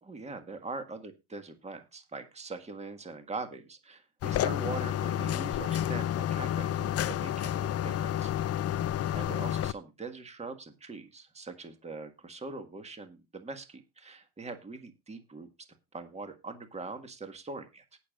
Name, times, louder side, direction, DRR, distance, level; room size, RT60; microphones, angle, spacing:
voice 1, 0.0-8.3 9.1-15.5 15.9-18.0, right 3 dB, 15° right, 7 dB, 1.8 m, -42 dB
sound 1, 4.2-9.7, left 11 dB, 30° left, 0.5 m, -30 dB
19.5 x 7.1 x 2.4 m, 0.26 s
cardioid pair, 120°, 47 cm